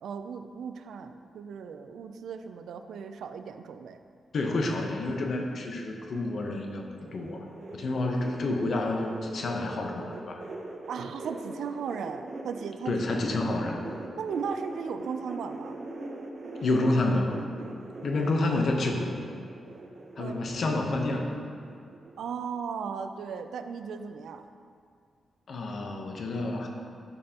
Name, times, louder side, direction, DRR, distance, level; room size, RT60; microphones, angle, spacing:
voice 1, 0.0-4.0 10.9-12.9 14.2-15.8 20.2-20.3 22.2-24.5, right 6 dB, 85° right, 8 dB, 0.4 m, -36 dB
voice 2, 4.3-6.8 7.1-7.5 7.7-10.4 12.9-13.8 16.6-17.4 18.0-19.2 20.2-21.4 25.5-26.7, left 2 dB, 55° left, 2 dB, 0.8 m, -29 dB
sound 1, 6.2-12.9 13.2-22.2 22.5-23.0 23.3-23.4, right 2 dB, 40° right, 0.7 m, -42 dB
11.5 x 5.5 x 2.9 m, 2.4 s
wide cardioid pair, 140°, 0 cm